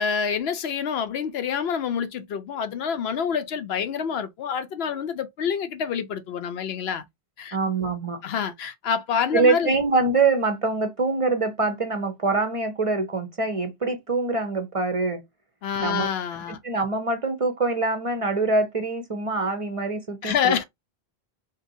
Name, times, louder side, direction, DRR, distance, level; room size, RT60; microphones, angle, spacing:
voice 1, 0.0-7.0 7.4-7.6 8.2-9.7 15.6-16.6 20.2-20.6, left 7 dB, 75° left, 0.8 m, -27 dB
voice 2, 7.5-8.2 9.3-15.2 15.8-16.1 16.5-20.6, right 3 dB, 40° right, 0.6 m, -24 dB
3.7 x 2.7 x 2.6 m
omnidirectional pair, 1.1 m